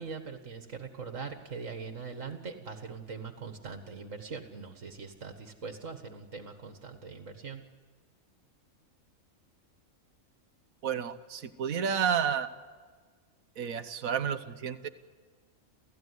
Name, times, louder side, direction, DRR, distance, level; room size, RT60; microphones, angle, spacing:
voice 1, 0.0-7.6, right 5 dB, 65° right, 5 dB, 2.0 m, -42 dB
voice 2, 10.8-12.5 13.6-14.9, right 7 dB, 90° right, 10 dB, 1.4 m, -31 dB
29.5 x 15.0 x 9.7 m, 1.5 s
omnidirectional pair, 1.4 m